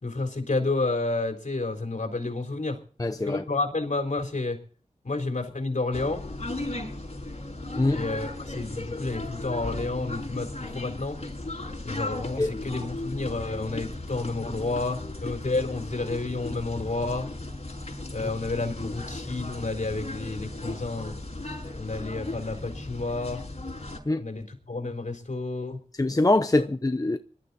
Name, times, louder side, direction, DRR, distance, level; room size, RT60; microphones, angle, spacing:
voice 1, 0.0-2.8 3.2-4.6 5.0-6.2 7.9-11.2 11.8-17.3 18.1-21.2 21.8-23.4 24.2-25.8, left 3 dB, 70° left, 4.0 m, -30 dB
voice 2, 3.0-3.4 7.7-8.0 12.4-12.6 24.1-24.2 26.0-27.2, left 2 dB, 25° left, 0.8 m, -23 dB
sound 1, 5.9-24.0, left 2 dB, 50° left, 6.3 m, -36 dB
21.0 x 12.5 x 4.2 m
wide cardioid pair, 70°, 13 cm